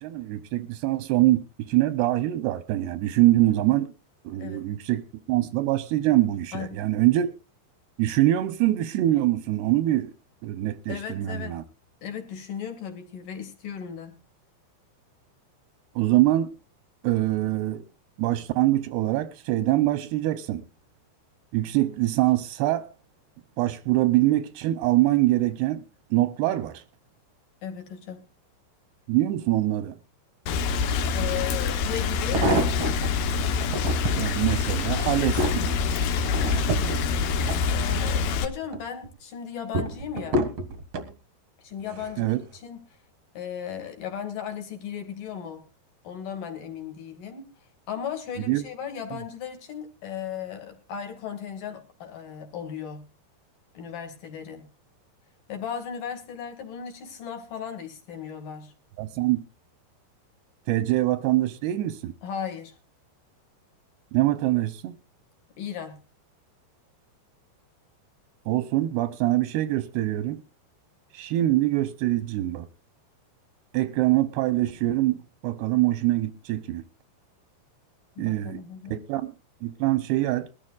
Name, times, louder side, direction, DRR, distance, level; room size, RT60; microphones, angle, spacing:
voice 1, 0.0-3.9 4.2-5.0 5.3-7.3 8.0-10.1 10.4-11.6 16.0-16.5 17.0-17.8 18.2-20.6 21.5-22.9 23.6-25.8 26.1-26.8 29.1-30.0 34.2-35.8 42.2-42.4 48.4-48.6 59.0-59.4 60.7-62.1 64.1-64.9 68.5-70.4 71.1-72.7 73.7-76.8 78.2-78.6 78.9-79.3 79.6-80.5, right 15 dB, 80° right, 2.4 m, -24 dB
voice 2, 6.5-6.9 10.9-11.6 12.0-14.1 27.6-28.2 31.1-32.5 37.7-40.5 41.6-42.8 43.3-45.6 46.0-53.0 53.7-54.7 55.5-58.7 62.2-62.8 65.6-66.0 78.2-79.1, left 8 dB, 55° left, 3.2 m, -36 dB
Rain, 30.5-38.5, left 5 dB, 70° left, 2.4 m, -26 dB
sound 1, 31.3-31.4 32.1-33.1 33.6-34.3 34.8-38.2 38.6-39.1 39.7-41.1 41.9-42.2 42.5-42.6, right 1 dB, 60° right, 1.5 m, -29 dB
22.0 x 14.0 x 2.4 m
omnidirectional pair, 5.4 m